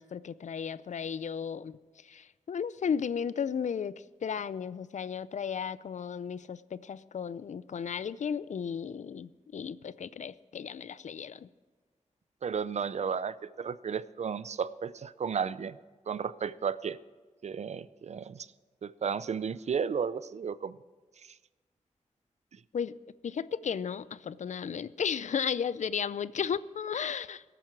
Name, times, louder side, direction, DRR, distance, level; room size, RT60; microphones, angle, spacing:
voice 1, 0.0-11.5 22.7-22.9 23.2-27.4, left 7 dB, 70° left, 17 dB, 0.4 m, -34 dB
voice 2, 12.4-15.8 16.1-17.0 17.4-18.5 18.8-20.8, right 6 dB, 60° right, 17 dB, 0.4 m, -33 dB
21.5 x 9.0 x 4.6 m, 1.4 s
wide cardioid pair, 135°, 13 cm